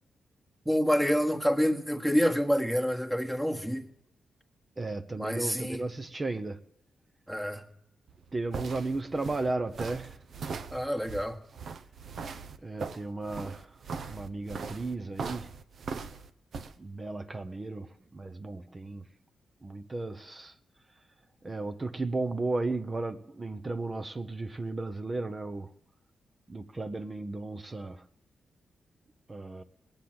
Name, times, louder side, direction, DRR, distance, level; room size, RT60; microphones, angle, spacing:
voice 1, 0.6-3.9 5.2-5.8 7.3-7.6 10.7-11.4, equal, 5° right, 1.4 m, -27 dB
voice 2, 4.8-6.6 8.3-10.2 12.6-13.8 14.1-15.5 16.8-19.1 19.6-20.5 21.4-25.7 26.5-28.0 29.3-29.6, right 2 dB, 25° right, 0.8 m, -34 dB
sound 1, 8.1-16.7, right 5 dB, 60° right, 0.8 m, -40 dB
19.0 x 8.8 x 7.8 m
cardioid pair, 105°, 0 cm